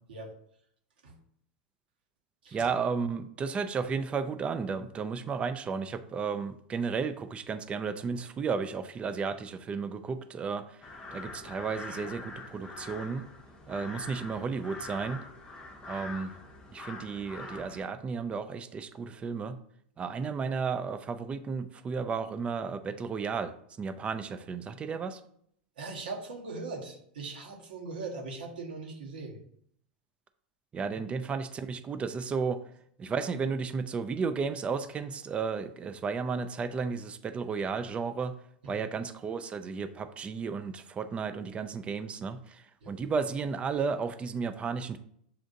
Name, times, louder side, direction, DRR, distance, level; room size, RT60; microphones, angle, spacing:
voice 1, 2.5-10.8 11.1-13.2 13.7-15.2 15.8-16.3 16.7-19.6 20.0-23.5 23.8-25.2 30.7-32.6 33.0-38.3 38.7-45.0, right 5 dB, 25° right, 10 dB, 0.4 m, -33 dB
sound 1, 10.8-17.9, left 3 dB, 20° left, 0.7 m, -44 dB
voice 2, 25.8-29.4 30.9-31.0 38.6-38.9 42.8-42.9, right 3 dB, 80° right, 0 dB, 1.2 m, -40 dB
7.0 x 2.5 x 2.6 m, 0.67 s
hypercardioid pair, 105°, 5 cm